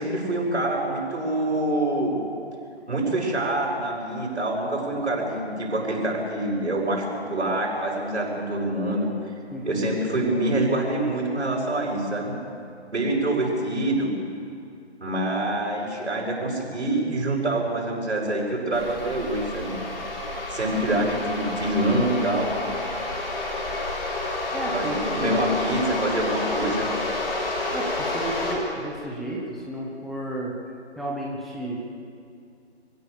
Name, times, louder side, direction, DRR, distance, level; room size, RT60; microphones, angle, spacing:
voice 1, 0.0-2.1 2.9-9.1 9.6-12.4 12.9-14.1 15.0-19.7 20.5-22.6 24.7-26.9, right 1 dB, 75° right, -2 dB, 7.6 m, -26 dB
voice 2, 9.5-9.9 24.5-25.5 27.7-30.6 31.0-31.9, right 1 dB, ahead, -5 dB, 0.8 m, -32 dB
sound 1, 18.7-28.6, left 2 dB, 55° left, 5.4 m, -30 dB
25.5 x 16.5 x 7.1 m, 2.4 s
figure-of-eight pair, 155°, 34 cm